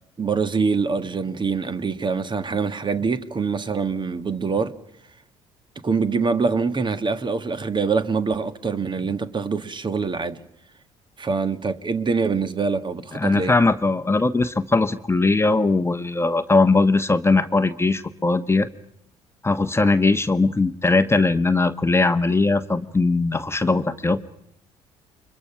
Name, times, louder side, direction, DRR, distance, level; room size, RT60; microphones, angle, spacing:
voice 1, 0.2-4.7 5.8-10.4 11.2-13.5, right 4 dB, 30° right, 1.6 m, -24 dB
voice 2, 13.1-18.7 19.4-24.2, left 3 dB, 15° left, 1.2 m, -20 dB
29.5 x 24.0 x 5.9 m
hypercardioid pair, 55°, 16 cm